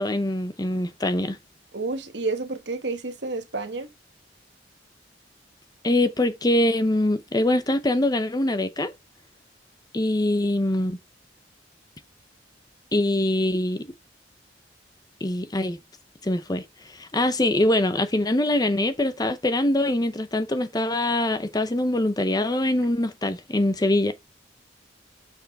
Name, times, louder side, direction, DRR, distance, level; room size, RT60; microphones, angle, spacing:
voice 1, 0.0-1.4 5.8-8.9 9.9-11.0 12.9-13.8 15.2-15.8 16.2-16.6 16.9-24.1, left 1 dB, 20° left, 0.7 m, -23 dB
voice 2, 1.7-3.9, right 3 dB, 65° right, 1.3 m, -30 dB
6.9 x 5.8 x 4.1 m
head